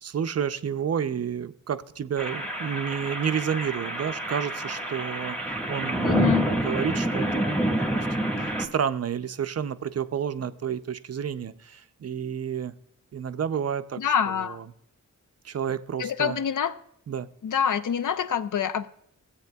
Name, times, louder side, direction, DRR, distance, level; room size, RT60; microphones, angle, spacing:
voice 1, 0.0-5.4 5.7-12.7 13.1-14.6 15.4-16.4 17.1-17.3, right 8 dB, 50° right, 0.5 m, -30 dB
sound 1, 2.2-8.7, right 1 dB, 5° left, 1.5 m, -28 dB
voice 2, 6.0-6.5 14.0-14.6 16.0-16.7 17.4-18.9, left 8 dB, 70° left, 0.6 m, -26 dB
16.0 x 8.4 x 2.3 m
wide cardioid pair, 110°, 32 cm